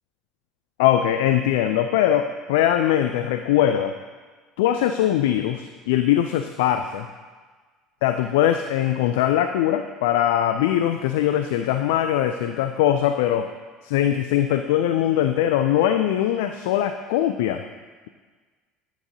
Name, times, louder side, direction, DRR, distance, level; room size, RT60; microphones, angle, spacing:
voice 1, 0.8-3.9 4.6-7.1 8.0-13.5 13.8-17.6, left 11 dB, 65° left, 7 dB, 0.3 m, -21 dB
9.3 x 8.8 x 2.8 m, 1.4 s
figure-of-eight pair, 65°, 0 cm